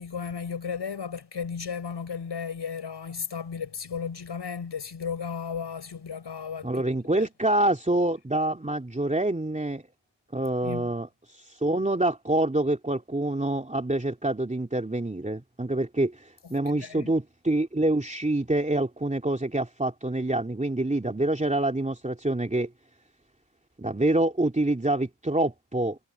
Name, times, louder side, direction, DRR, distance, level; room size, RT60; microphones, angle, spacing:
voice 1, 0.0-6.8 7.1-7.3 10.6-10.9 16.7-17.1, left 6 dB, 65° left, 5.8 m, -34 dB
voice 2, 6.6-9.8 10.3-22.7 23.8-26.0, right 1 dB, 15° right, 3.0 m, -26 dB
cardioid pair, 55°, 44 cm